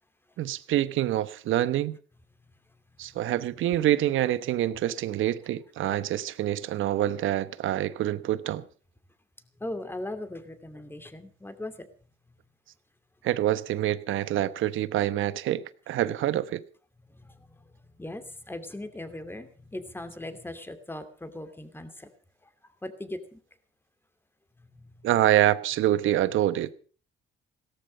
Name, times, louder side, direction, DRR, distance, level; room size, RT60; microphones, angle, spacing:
voice 1, 0.4-2.0 3.0-8.6 13.2-16.6 25.0-26.7, right 13 dB, 80° right, 1.1 m, -26 dB
voice 2, 9.6-11.9 17.1-22.1 22.6-23.4 24.6-25.1, left 1 dB, 10° left, 2.7 m, -39 dB
17.0 x 14.0 x 5.4 m
cardioid pair, 90°, 20 cm